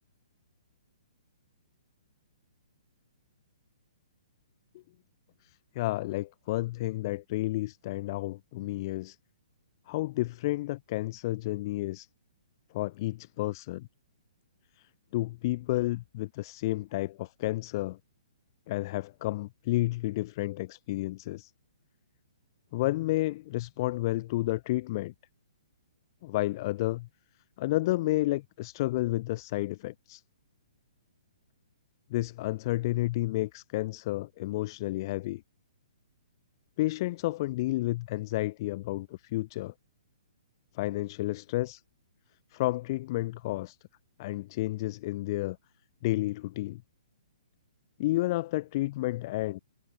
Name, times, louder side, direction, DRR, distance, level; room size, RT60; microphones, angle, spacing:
voice 1, 5.7-9.2 9.9-12.1 12.7-13.9 15.1-18.0 18.7-21.5 22.7-25.1 26.2-27.1 27.6-30.2 32.1-35.4 36.8-39.7 40.7-41.8 42.5-43.8 44.2-45.6 46.0-46.8 48.0-49.6, left 18 dB, 40° left, 1.8 m, -31 dB
figure-of-eight pair, 125°, 3 cm